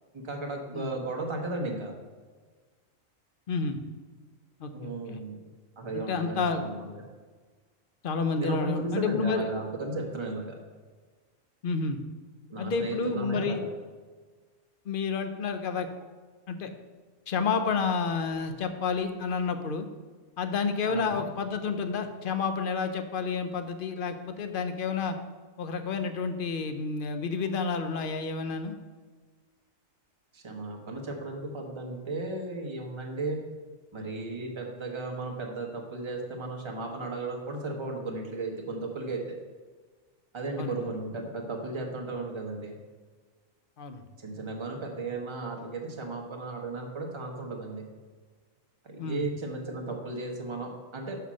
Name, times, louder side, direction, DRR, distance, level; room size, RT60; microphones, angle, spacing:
voice 1, 0.1-1.9 4.7-5.4 5.8-6.9 8.4-10.6 12.5-13.7 20.8-21.1 30.3-33.4 33.9-39.2 40.3-42.8 44.2-47.9 48.8-51.2, right 2 dB, 25° right, 1 dB, 1.0 m, -35 dB
voice 2, 3.5-3.8 4.6-5.2 5.9-6.7 8.0-9.5 11.6-12.0 12.6-13.7 14.9-15.9 16.5-16.7 17.3-19.9 20.4-25.2 25.6-28.7 40.6-40.9 43.8-44.1 49.0-49.3, left 5 dB, 55° left, 8 dB, 0.7 m, -30 dB
5.7 x 5.7 x 6.2 m, 1.4 s
omnidirectional pair, 1.4 m